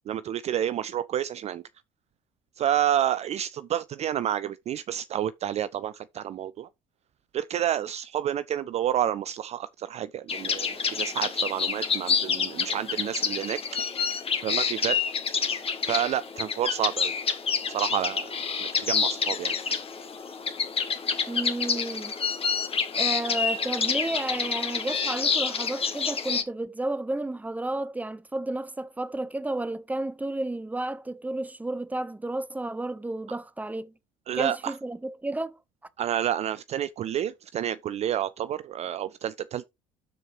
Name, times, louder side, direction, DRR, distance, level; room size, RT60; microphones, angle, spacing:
voice 1, 0.1-1.6 2.6-6.7 7.3-13.6 14.4-15.0 15.9-17.1 17.7-19.6 34.3-34.7 36.0-39.6, right 11 dB, 40° right, 0.4 m, -29 dB
sound 1, 10.3-26.4, left 6 dB, 30° left, 1.6 m, -28 dB
voice 2, 21.3-22.1 23.0-33.9 34.3-35.6, right 2 dB, 10° right, 0.9 m, -32 dB
12.5 x 4.5 x 3.2 m
figure-of-eight pair, 55°, 18 cm